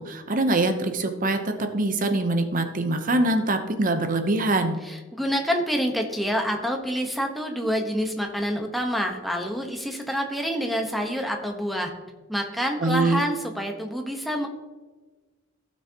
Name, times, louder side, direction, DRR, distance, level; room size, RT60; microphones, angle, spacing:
voice 1, 0.0-4.8 12.8-13.2, right 2 dB, 45° right, 7 dB, 0.8 m, -24 dB
voice 2, 4.8-11.9 12.3-14.5, equal, ahead, 2 dB, 1.1 m, -27 dB
15.5 x 6.2 x 2.9 m, 1.3 s
head